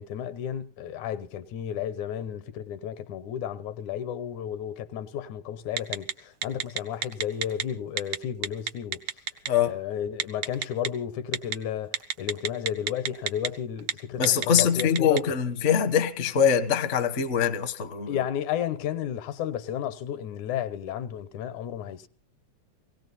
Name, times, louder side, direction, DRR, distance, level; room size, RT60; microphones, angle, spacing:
voice 1, 0.0-9.0 9.7-15.2 18.1-22.1, left 9 dB, 85° left, 2.5 m, -33 dB
Telephone, 5.8-6.1 6.4-7.6 8.0-8.2 8.4-9.5 10.2-10.9 11.3-11.5 11.9-13.5 13.8-13.9 14.2-15.2, right 9 dB, 75° right, 1.1 m, -27 dB
voice 2, 14.2-18.2, left 8 dB, 60° left, 0.7 m, -23 dB
18.0 x 17.5 x 4.2 m
omnidirectional pair, 3.3 m